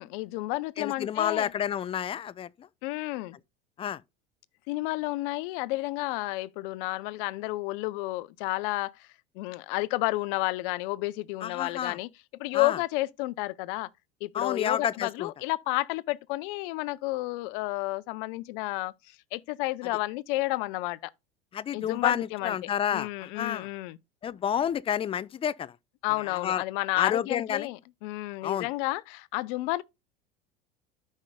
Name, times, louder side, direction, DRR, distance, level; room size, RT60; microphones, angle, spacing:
voice 1, 0.0-1.5 2.8-3.4 4.7-9.1 9.3-13.9 14.2-21.1 21.7-22.5 22.9-24.0 26.0-29.8, left 20 dB, 60° left, 0.6 m, -31 dB
voice 2, 0.8-2.7 3.8-4.0 11.4-12.0 12.5-12.8 14.3-15.3 21.5-23.7 24.2-25.7 26.3-26.6 27.0-27.7 28.4-28.7, left 9 dB, 20° left, 0.3 m, -30 dB
13.5 x 5.4 x 2.2 m
hypercardioid pair, 85°, 29 cm